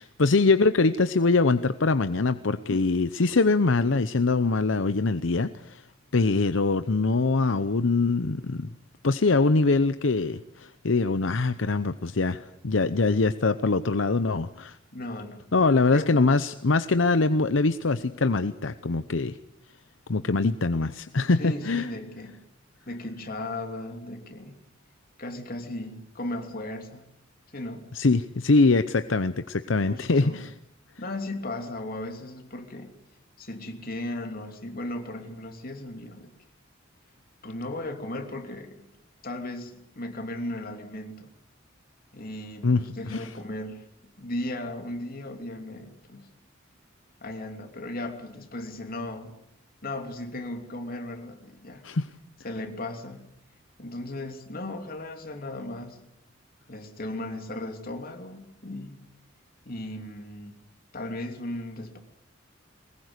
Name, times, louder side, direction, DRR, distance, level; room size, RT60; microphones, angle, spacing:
voice 1, 0.0-5.8 6.1-8.7 9.0-14.8 15.5-19.4 20.1-21.9 27.9-30.5 42.6-43.3 51.8-52.1, left 3 dB, 75° left, 11 dB, 0.8 m, -23 dB
voice 2, 14.9-15.4 15.9-16.3 21.4-22.4 22.9-24.6 25.2-27.1 27.5-27.9 29.9-30.4 31.0-32.9 33.4-36.3 37.4-38.9 39.2-41.3 42.1-43.8 44.2-46.3 47.2-49.4 49.8-51.9 52.4-53.3 53.8-56.0 56.7-59.0 59.6-60.5 60.9-62.0, left 1 dB, 50° left, 5 dB, 3.1 m, -36 dB
23.0 x 20.5 x 8.1 m, 0.82 s
head